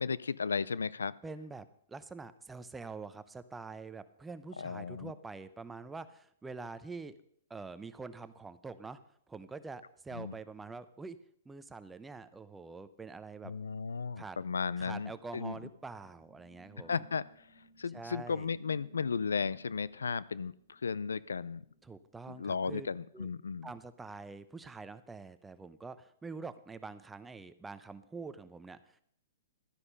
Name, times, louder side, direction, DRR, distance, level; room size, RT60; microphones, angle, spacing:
voice 1, 0.0-1.2 4.6-5.1 10.1-10.3 13.4-15.6 16.8-17.5 17.8-21.6 22.3-23.7, left 5 dB, 90° left, 20 dB, 0.4 m, -35 dB
voice 2, 1.2-7.2 7.5-9.0 9.3-11.2 11.4-13.5 14.2-14.4 14.8-17.0 17.9-18.5 21.8-23.3 23.6-29.0, right 4 dB, 10° right, 12 dB, 0.7 m, -45 dB
sound 1, 14.9-22.7, equal, 20° left, 4.3 m, -63 dB
12.5 x 9.8 x 5.4 m, 0.68 s
hypercardioid pair, 130°, 0 cm